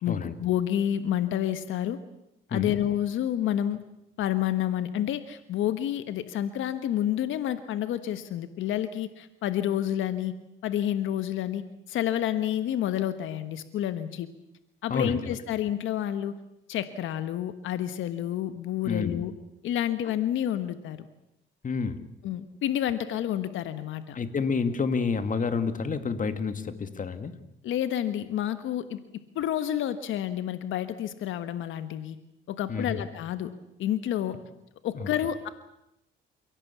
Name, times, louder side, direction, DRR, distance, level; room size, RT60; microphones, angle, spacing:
voice 1, 0.0-2.0 2.5-3.8 4.2-10.3 10.6-14.3 14.8-16.4 16.7-19.3 19.6-21.1 22.2-24.1 27.6-29.0 29.3-32.2 32.5-33.5 33.8-34.4 34.8-35.5, left 11 dB, 85° left, 11 dB, 1.4 m, -29 dB
voice 2, 14.9-15.4 18.9-19.2 21.6-22.0 24.1-27.4 32.7-33.0 34.9-35.1, left 5 dB, 40° left, 10 dB, 2.2 m, -29 dB
29.0 x 17.5 x 8.4 m, 0.85 s
cardioid pair, 90°, 20 cm